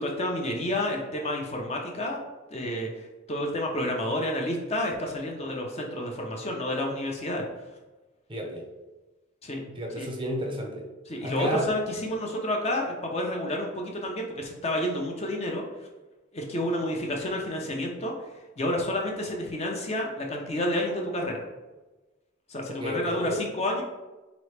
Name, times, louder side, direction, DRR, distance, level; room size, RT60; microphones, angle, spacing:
voice 1, 0.0-2.2 2.5-7.4 9.4-9.6 10.0-10.1 11.1-15.6 16.3-18.1 18.6-21.4 22.5-23.8, left 1 dB, 30° left, 0 dB, 0.5 m, -30 dB
voice 2, 8.3-8.7 9.7-10.9 11.2-11.7 22.7-23.4, equal, 25° right, 1 dB, 0.5 m, -32 dB
3.9 x 3.0 x 3.2 m, 1.1 s
head